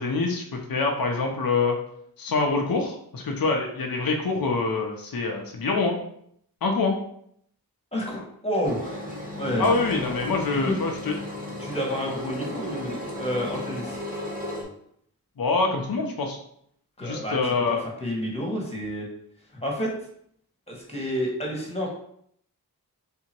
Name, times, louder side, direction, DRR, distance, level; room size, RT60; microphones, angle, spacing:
voice 1, 0.0-1.8 2.2-6.0 6.6-7.0 9.6-11.2 15.4-16.4 17.0-17.8, left 3 dB, 60° left, 1 dB, 0.7 m, -25 dB
voice 2, 7.9-9.7 10.5-10.7 11.6-14.0 17.0-19.1 19.6-19.9 20.7-21.9, equal, 15° left, -2 dB, 1.5 m, -30 dB
Engine, 8.6-14.6, left 1 dB, 20° right, 1.5 m, -34 dB
3.5 x 2.9 x 4.4 m, 0.68 s
wide cardioid pair, 70°, 39 cm